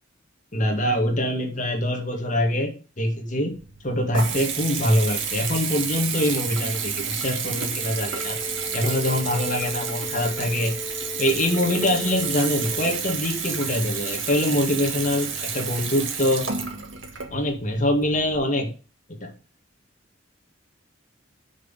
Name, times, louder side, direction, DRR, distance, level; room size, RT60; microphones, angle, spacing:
voice 1, 0.5-3.5 3.8-8.4 8.7-10.7 11.2-16.5 17.3-18.7 19.1-19.3, left 1 dB, 40° left, 2 dB, 2.1 m, -24 dB
Water tap faucet / Bathtub (filling or washing) / Trickle dribble, 3.5-18.4, right 6 dB, 75° right, 1.7 m, -30 dB
sound 1, 8.0-13.0, left 3 dB, 15° left, 0.9 m, -37 dB
6.3 x 6.2 x 7.3 m, 0.34 s
head